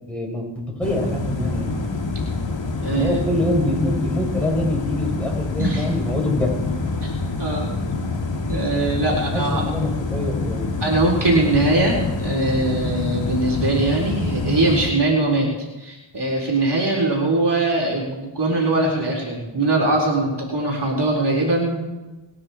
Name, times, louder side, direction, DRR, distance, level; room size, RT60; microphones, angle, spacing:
voice 1, 0.1-1.8 2.9-6.6 9.1-10.7, left 1 dB, 5° left, -2 dB, 7.4 m, -25 dB
sound 1, 0.8-14.9, left 3 dB, 65° left, 2.2 m, -26 dB
voice 2, 2.8-3.1 5.6-5.8 7.0-7.7 8.5-9.6 10.8-15.5 15.8-21.9, right 2 dB, 55° right, -3 dB, 4.1 m, -21 dB
27.5 x 9.8 x 4.4 m, 1.1 s
cardioid pair, 45°, 47 cm